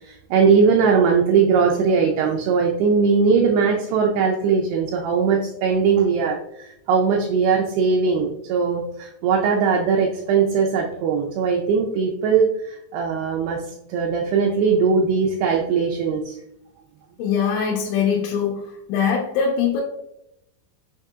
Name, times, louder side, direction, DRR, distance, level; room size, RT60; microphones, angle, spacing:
voice 1, 0.0-13.6 13.9-16.4, right 5 dB, 90° right, 0 dB, 2.3 m, -20 dB
voice 2, 17.2-18.6 18.9-19.8, left 7 dB, 85° left, -3 dB, 3.0 m, -22 dB
6.9 x 2.7 x 2.4 m, 0.82 s
omnidirectional pair, 5.2 m